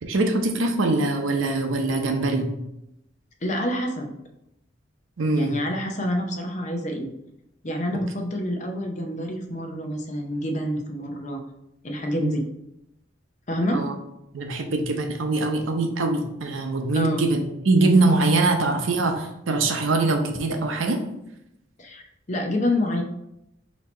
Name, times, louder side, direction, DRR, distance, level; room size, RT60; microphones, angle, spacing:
voice 1, 0.0-2.5 5.2-5.5 12.2-12.3 13.7-13.9 14.3-21.0, right 2 dB, 85° right, 4 dB, 0.7 m, -23 dB
voice 2, 3.4-4.1 5.3-7.1 7.6-11.4 11.8-12.5 13.5-13.9 16.9-17.2 21.8-23.0, left 1 dB, 35° left, 3 dB, 0.6 m, -27 dB
4.2 x 2.8 x 4.2 m, 0.83 s
head